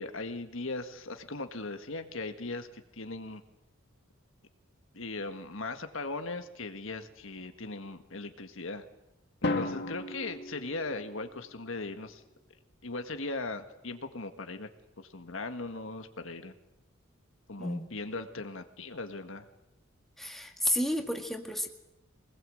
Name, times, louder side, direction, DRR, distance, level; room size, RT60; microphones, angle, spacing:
voice 1, 0.0-3.4 4.9-8.9 9.4-12.2 12.8-14.7 15.0-16.5 17.5-19.5, left 3 dB, 70° left, 7 dB, 1.8 m, -38 dB
Drum, 9.4-11.5, left 2 dB, 55° left, 2.4 m, -34 dB
voice 2, 20.2-21.7, left 1 dB, ahead, 3 dB, 2.0 m, -31 dB
25.0 x 20.0 x 7.9 m, 0.91 s
head